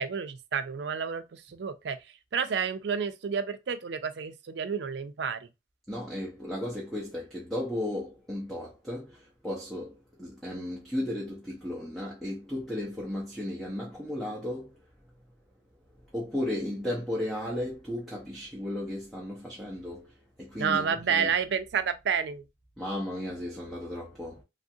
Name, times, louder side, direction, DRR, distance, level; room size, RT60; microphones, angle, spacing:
voice 1, 0.0-2.0 2.3-5.4 20.6-22.4, right 6 dB, 75° right, 0.4 m, -30 dB
voice 2, 5.9-14.8 16.0-21.3 22.8-24.4, left 1 dB, ahead, 0.6 m, -35 dB
3.4 x 2.4 x 2.6 m
head